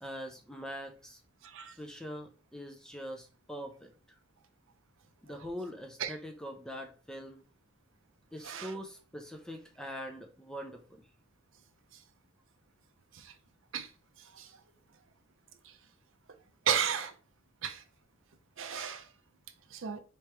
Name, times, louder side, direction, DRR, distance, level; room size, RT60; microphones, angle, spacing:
voice 1, 0.0-1.2 1.8-3.9 5.2-7.4 8.3-11.0, equal, 5° left, 0.5 m, -43 dB
voice 2, 1.4-1.7 6.0-6.1 8.4-8.7 13.1-13.3 13.7-13.9 14.3-14.5 16.7-17.1 17.6-17.8 18.6-19.1 19.7-20.0, right 8 dB, 60° right, 0.6 m, -33 dB
3.3 x 3.0 x 4.5 m
head